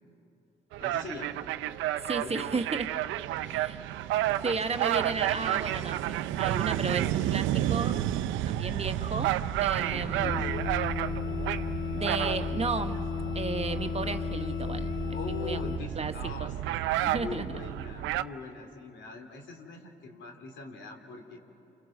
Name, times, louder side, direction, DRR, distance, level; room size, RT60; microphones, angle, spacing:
sound 1, 0.7-18.2, right 13 dB, 80° right, 0.5 m, -31 dB
voice 1, 0.8-1.4 2.1-2.6 3.4-3.6 9.7-10.5 15.1-16.6 17.0-21.4, left 3 dB, 70° left, 4 dB, 2.8 m, -42 dB
voice 2, 2.0-2.9 3.4-3.8 4.4-8.0 8.5-9.3 9.6-10.5 11.9-13.1 13.3-16.1 16.4-16.5 17.1-17.4, right 4 dB, 30° right, 8 dB, 1.2 m, -34 dB
sound 2, 10.2-15.8, left 5 dB, 50° left, 1.3 m, -33 dB
29.5 x 28.0 x 6.0 m, 2.8 s
supercardioid pair, 60°, 20 cm